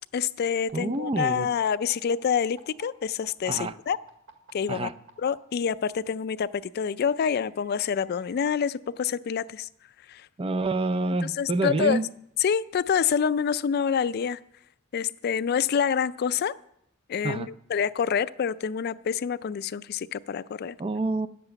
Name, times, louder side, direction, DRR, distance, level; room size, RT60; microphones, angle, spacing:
voice 1, 0.1-4.0 4.5-4.9 5.2-9.7 10.1-10.3 11.2-12.0 12.4-14.4 14.9-16.6 17.1-20.8, left 7 dB, 50° left, 0.3 m, -27 dB
voice 2, 0.7-1.5 3.5-3.7 4.7-4.9 10.4-12.0 17.2-17.5 20.8-21.3, right 3 dB, 30° right, 0.4 m, -27 dB
sound 1, 0.7-5.3 6.4-8.7, right 3 dB, 70° right, 2.0 m, -54 dB
10.5 x 7.7 x 7.9 m
head